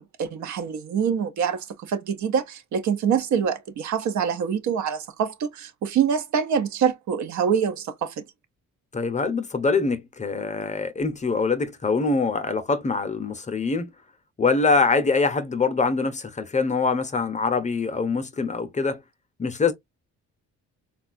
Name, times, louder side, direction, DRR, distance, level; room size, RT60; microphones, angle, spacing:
voice 1, 0.0-8.2, right 7 dB, 70° right, 0.6 m, -25 dB
voice 2, 8.9-13.9 14.4-19.0 19.4-19.7, left 4 dB, 25° left, 0.6 m, -24 dB
3.5 x 2.3 x 2.4 m
cardioid pair, 90°, 30 cm